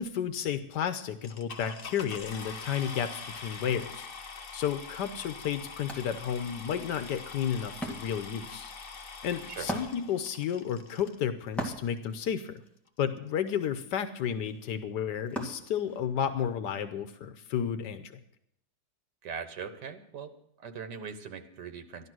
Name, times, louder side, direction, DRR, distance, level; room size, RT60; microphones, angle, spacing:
voice 1, 0.0-8.7 9.2-12.6 13.0-18.2, left 8 dB, 85° left, 10 dB, 1.4 m, -32 dB
sound 1, 1.2-11.2 12.0-12.1 12.6-12.7 12.9-13.2, left 5 dB, 40° left, 1.0 m, -44 dB
Wood, 5.9-16.5, right 1 dB, ahead, 2.1 m, -42 dB
voice 2, 19.2-20.3 20.6-22.1, right 6 dB, 85° right, 8 dB, 1.7 m, -40 dB
13.5 x 11.5 x 6.2 m, 0.75 s
omnidirectional pair, 1.8 m